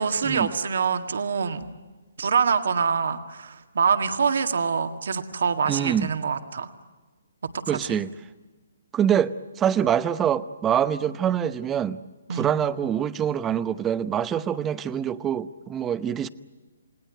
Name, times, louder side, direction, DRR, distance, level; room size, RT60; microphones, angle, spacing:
voice 1, 0.0-1.7 2.2-6.7 7.7-8.0 12.3-12.5, right 6 dB, 70° right, 1.9 m, -25 dB
voice 2, 5.7-6.1 7.7-8.1 8.9-12.0 12.3-16.3, right 9 dB, 15° right, 0.8 m, -25 dB
29.5 x 18.5 x 9.4 m
hypercardioid pair, 145°, 0 cm